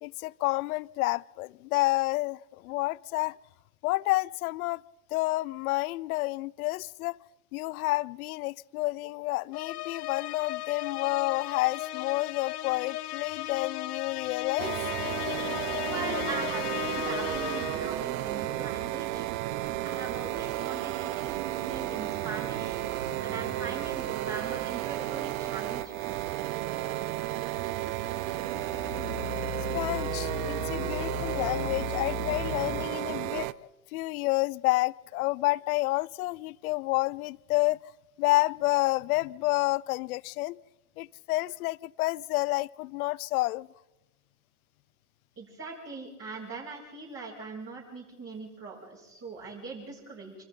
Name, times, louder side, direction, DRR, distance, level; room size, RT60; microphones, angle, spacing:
voice 1, 0.0-3.4 3.8-4.8 5.1-7.2 7.5-14.8 23.0-23.2 29.7-33.5 33.9-37.8 38.2-40.6 41.0-43.7, left 20 dB, 70° left, 0.7 m, -29 dB
sound 1, 9.5-18.0, left 15 dB, 85° left, 1.9 m, -36 dB
sound 2, 14.6-33.5, right 16 dB, 60° right, 0.8 m, -33 dB
sound 3, 15.0-32.9, left 10 dB, 35° left, 1.8 m, -43 dB
voice 2, 15.9-19.3 19.8-22.8 23.2-26.0 45.4-50.4, right 4 dB, 30° right, 7.3 m, -40 dB
27.5 x 26.0 x 3.9 m
hypercardioid pair, 110°, 45 cm